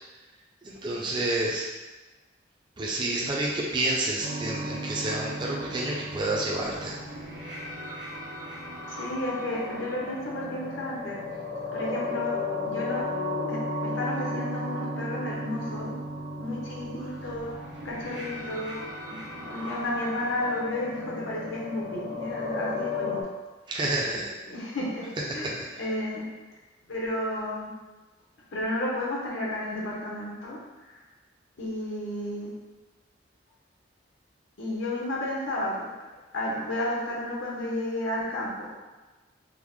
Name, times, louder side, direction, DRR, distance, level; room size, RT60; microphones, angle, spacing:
voice 1, 0.6-1.7 2.8-7.0 23.7-24.3 25.4-25.8, right 2 dB, 25° right, -3 dB, 0.4 m, -29 dB
sound 1, 4.2-23.2, left 1 dB, 65° right, 0.7 m, -35 dB
voice 2, 8.9-11.2 11.7-12.4 12.6-13.1 13.5-16.0 16.4-17.5 17.8-18.8 19.1-23.2 24.5-25.1 25.3-26.2 26.9-27.7 28.5-30.6 30.9-31.0 31.6-32.5 34.6-35.9 36.3-38.7, left 1 dB, 75° left, -4 dB, 0.8 m, -32 dB
3.6 x 2.1 x 3.0 m, 1.2 s
head